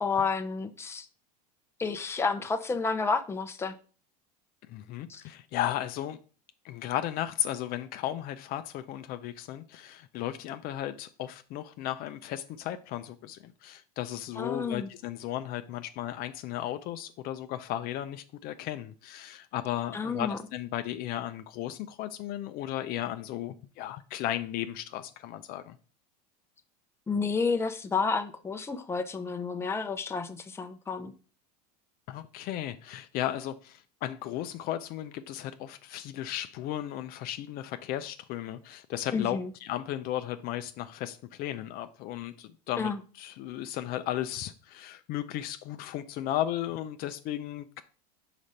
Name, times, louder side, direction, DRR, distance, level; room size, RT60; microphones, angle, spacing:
voice 1, 0.0-1.1 1.8-3.8 5.1-5.2 14.4-14.9 19.9-20.4 27.1-31.1 39.1-39.5 42.8-43.0, left 4 dB, 15° left, 0.7 m, -30 dB
voice 2, 4.7-6.2 6.6-25.8 32.1-47.8, left 12 dB, 50° left, 0.6 m, -35 dB
5.0 x 5.0 x 4.2 m
supercardioid pair, 105°, 20 cm